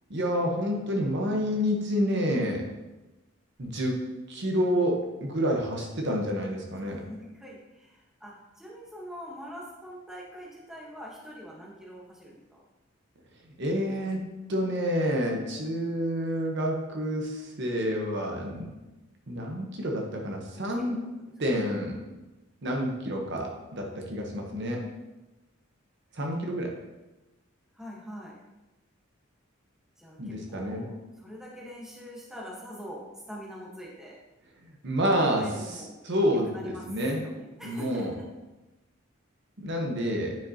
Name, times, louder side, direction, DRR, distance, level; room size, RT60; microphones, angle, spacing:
voice 1, 0.1-2.6 3.6-4.0 4.3-7.0 13.6-14.2 14.5-18.7 19.3-21.0 21.4-22.0 22.6-24.8 26.1-26.7 30.2-30.8 34.8-35.5 36.0-37.2 37.6-38.1 39.6-40.4, equal, 55° right, 1 dB, 1.0 m, -28 dB
voice 2, 6.9-12.6 20.5-21.8 23.3-24.6 27.7-28.4 30.0-30.9 31.2-34.2 35.3-35.9 36.3-36.8 37.1-38.1, equal, ahead, -4 dB, 1.2 m, -44 dB
9.3 x 5.0 x 2.8 m, 1.1 s
head